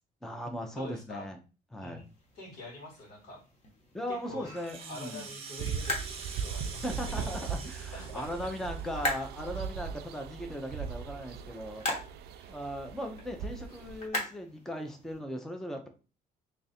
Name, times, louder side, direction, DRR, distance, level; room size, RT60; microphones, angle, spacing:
voice 1, 0.2-1.4 1.7-2.0 3.9-5.3 6.8-11.8 12.5-15.9, equal, ahead, 4 dB, 0.5 m, -38 dB
voice 2, 0.7-1.3 1.8-2.1 2.4-3.4 4.1-4.5 4.9-7.4 7.9-8.5 11.9-12.0 12.4-12.6, left 2 dB, 80° left, -1 dB, 2.0 m, -46 dB
sound 1, 2.0-15.2, left 1 dB, 40° left, 1.1 m, -42 dB
Rattle (instrument), 4.5-9.2, right 5 dB, 35° right, 0.7 m, -45 dB
sound 2, 5.6-14.1, right 7 dB, 75° right, 0.4 m, -39 dB
3.1 x 2.5 x 4.1 m, 0.33 s
cardioid pair, 150°, 17 cm